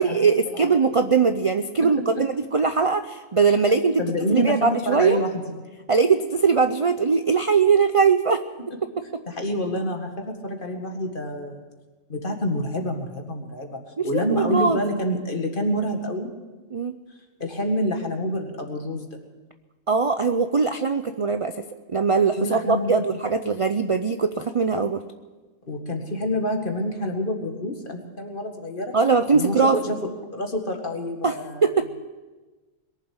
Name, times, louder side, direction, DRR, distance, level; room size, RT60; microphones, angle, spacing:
voice 1, 0.0-4.0 4.3-5.2 5.9-8.4 14.0-14.8 16.7-16.9 19.9-25.0 28.9-29.8 31.2-31.9, right 5 dB, 45° right, 9 dB, 0.4 m, -21 dB
voice 2, 4.0-4.6 4.9-5.5 9.3-11.6 12.1-16.3 17.4-19.2 22.4-22.9 25.7-29.0 29.3-29.6 29.8-30.0 30.3-31.7, left 1 dB, 40° left, 3 dB, 2.0 m, -27 dB
21.5 x 7.5 x 8.7 m, 1.2 s
omnidirectional pair, 1.3 m